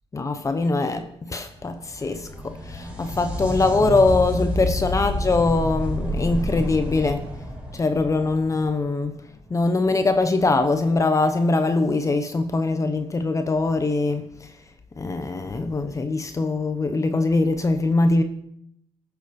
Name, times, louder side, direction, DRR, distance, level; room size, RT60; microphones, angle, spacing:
voice 1, 0.1-7.2 7.7-9.1 9.5-14.2 15.0-18.2, left 3 dB, 30° left, 0.9 m, -22 dB
sound 1, 1.6-9.2 12.6-12.7 13.7-13.8, equal, 10° right, 4.4 m, -29 dB
14.5 x 7.1 x 5.3 m
cardioid pair, 95°, 10 cm